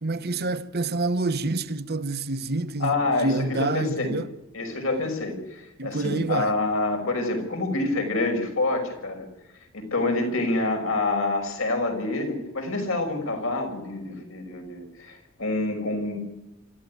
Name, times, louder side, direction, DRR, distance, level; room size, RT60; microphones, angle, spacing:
voice 1, 0.0-4.3 5.8-6.6, right 2 dB, 50° right, 1.0 m, -27 dB
voice 2, 2.8-3.3 3.6-4.2 4.5-9.2 9.7-16.2, left 2 dB, 80° left, 6.1 m, -27 dB
26.0 x 13.5 x 9.6 m
head